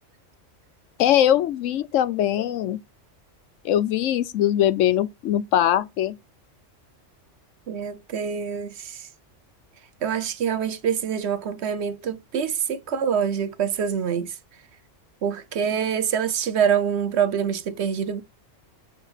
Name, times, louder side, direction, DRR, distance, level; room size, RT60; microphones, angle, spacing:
voice 1, 1.0-2.8 3.6-6.2, left 11 dB, 75° left, 1.0 m, -21 dB
voice 2, 7.7-9.0 10.0-14.3 15.2-18.2, right 7 dB, 60° right, 0.9 m, -25 dB
8.1 x 3.9 x 5.7 m
omnidirectional pair, 1.3 m